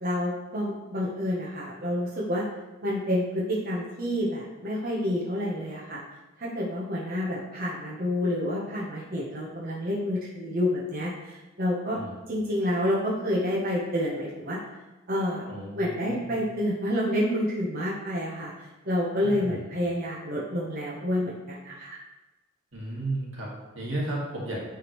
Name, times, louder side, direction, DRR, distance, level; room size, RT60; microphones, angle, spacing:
voice 1, 0.0-2.4 2.8-6.0 6.4-12.0 12.3-14.6 15.1-15.4 15.8-22.0, left 1 dB, 45° right, -5 dB, 1.0 m, -29 dB
voice 2, 15.5-16.3 19.2-19.6 22.7-24.6, right 2 dB, 80° right, -4 dB, 1.8 m, -34 dB
9.2 x 3.6 x 3.1 m, 1.1 s
head